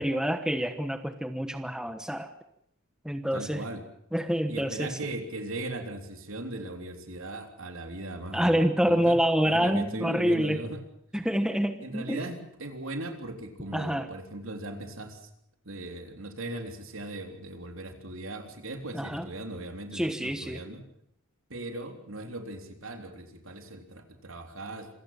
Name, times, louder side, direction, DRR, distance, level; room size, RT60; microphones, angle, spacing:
voice 1, 0.0-2.3 3.0-3.7 4.1-5.1 8.3-10.6 11.1-12.2 13.7-14.1 18.9-19.3 19.9-20.6, equal, 5° right, 8 dB, 1.2 m, -27 dB
voice 2, 3.3-3.8 4.5-10.8 11.8-15.3 15.7-20.8 21.5-24.9, right 1 dB, 65° right, 5 dB, 3.6 m, -38 dB
26.5 x 17.0 x 7.4 m, 0.73 s
head